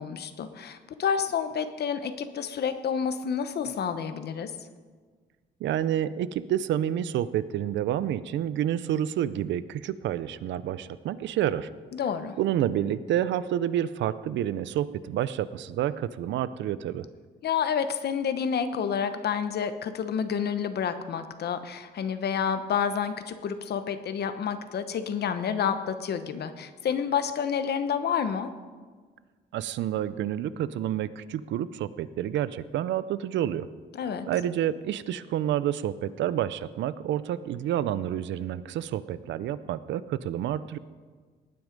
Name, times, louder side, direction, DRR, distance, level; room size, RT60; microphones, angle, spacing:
voice 1, 0.0-4.5 11.9-12.4 17.4-28.5 33.9-34.3, left 7 dB, 65° left, 10 dB, 1.0 m, -29 dB
voice 2, 5.6-11.7 12.4-17.1 29.5-33.7 34.3-40.8, right 11 dB, 90° right, 16 dB, 0.6 m, -29 dB
19.0 x 9.5 x 5.2 m, 1.5 s
cardioid pair, 115°, 18 cm